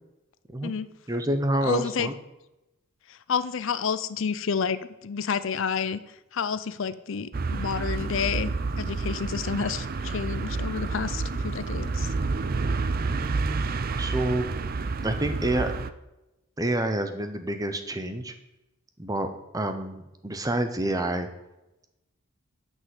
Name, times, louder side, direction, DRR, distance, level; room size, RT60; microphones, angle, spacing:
voice 1, 1.1-2.2 13.0-13.7 14.0-14.5 15.0-15.7 16.6-18.3 19.0-21.3, right 1 dB, 15° right, 8 dB, 0.8 m, -28 dB
voice 2, 1.6-2.1 3.3-4.8 5.0-6.0 6.3-8.5 8.8-12.1, left 6 dB, 60° left, 14 dB, 0.5 m, -29 dB
sound 1, 7.3-15.9, right 3 dB, 40° right, 0.5 m, -29 dB
9.5 x 5.4 x 8.2 m, 0.93 s
head